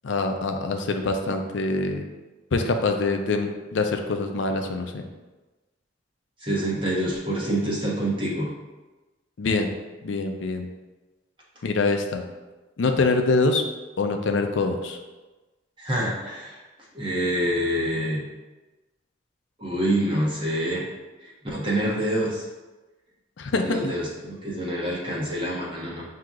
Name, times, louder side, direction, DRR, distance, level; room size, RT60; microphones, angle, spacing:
voice 1, 0.0-2.0 2.5-5.0 9.4-9.7 10.0-10.7 11.6-12.2 12.8-13.6 14.0-15.0 23.4-23.9, left 3 dB, 75° left, 5 dB, 0.5 m, -24 dB
voice 2, 6.4-8.5 15.8-16.6 16.9-18.2 19.6-20.8 21.4-22.5 23.5-26.0, right 1 dB, 25° right, -5 dB, 1.0 m, -26 dB
7.5 x 2.8 x 2.4 m, 1.2 s
head